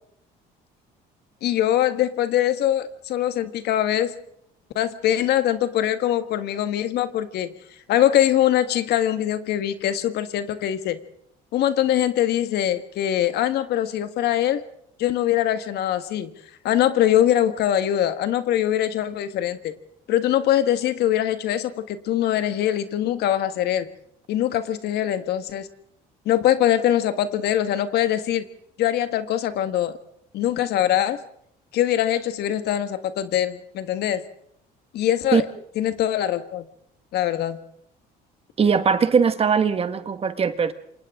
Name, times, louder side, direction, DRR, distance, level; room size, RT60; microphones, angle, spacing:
voice 1, 1.4-4.1 4.7-7.5 7.9-11.0 11.5-14.6 15.0-16.3 16.6-19.8 20.1-23.9 24.3-25.7 26.2-28.4 28.8-30.0 30.3-31.2 31.7-34.2 34.9-35.5 35.8-36.6 37.1-37.6, left 11 dB, 75° left, 10 dB, 1.6 m, -22 dB
voice 2, 38.6-40.7, right 6 dB, 35° right, 10 dB, 1.6 m, -20 dB
28.0 x 26.0 x 3.7 m, 0.71 s
cardioid pair, 110°, 17 cm